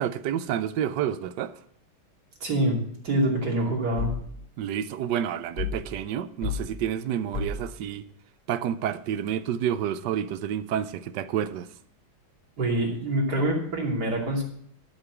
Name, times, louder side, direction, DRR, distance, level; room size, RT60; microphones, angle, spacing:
voice 1, 0.0-1.5 4.6-8.0 8.5-11.7, right 10 dB, 70° right, 1.1 m, -29 dB
voice 2, 2.4-2.8 3.0-4.1 12.6-14.4, right 1 dB, 50° right, 3.3 m, -25 dB
sound 1, 4.0-4.3 5.6-5.9 6.4-6.7 7.3-7.7, left 5 dB, 25° left, 3.4 m, -30 dB
11.5 x 6.8 x 6.0 m
omnidirectional pair, 2.2 m